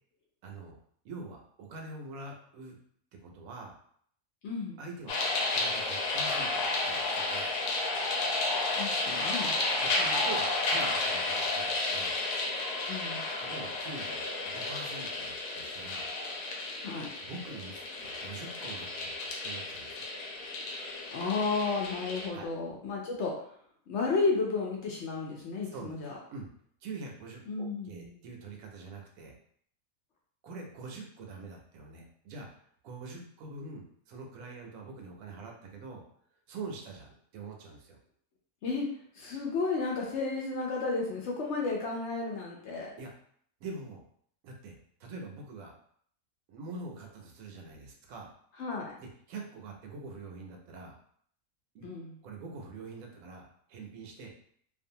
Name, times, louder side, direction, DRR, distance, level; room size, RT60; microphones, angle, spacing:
voice 1, 0.4-0.7 1.0-2.8 3.1-3.8 4.8-5.2 5.5-7.5 9.8-12.2 13.4-16.1 17.2-20.1 22.3-22.5 25.7-25.9 26.3-26.5 26.8-29.4 30.4-36.0 36.5-38.0 43.0-43.1 43.6-44.0 44.4-44.7 45.0-45.7 46.5-48.3 49.0-51.0 51.7-51.9 52.2-54.3, right 3 dB, 80° right, 1 dB, 1.0 m, -44 dB
voice 2, 4.4-4.8 8.7-9.6 10.0-10.2 12.9-13.2 16.8-17.1 21.1-23.3 23.9-26.1 27.5-28.2 38.6-38.9 39.1-42.9 48.6-48.9 51.8-52.1, left 4 dB, 65° left, -2 dB, 0.7 m, -32 dB
sound 1, 5.1-22.3, left 2 dB, 85° left, 1.1 m, -32 dB
2.5 x 2.3 x 2.7 m, 0.62 s
omnidirectional pair, 1.5 m